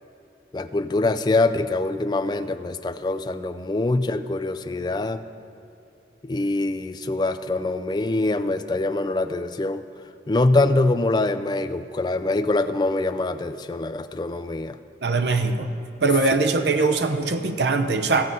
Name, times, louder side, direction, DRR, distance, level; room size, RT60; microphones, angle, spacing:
voice 1, 0.5-5.2 6.2-9.8 10.3-14.8, left 2 dB, 25° left, 10 dB, 0.3 m, -24 dB
voice 2, 15.0-15.7 16.0-18.2, right 3 dB, 75° right, 8 dB, 0.7 m, -21 dB
15.0 x 7.6 x 5.4 m, 2.7 s
head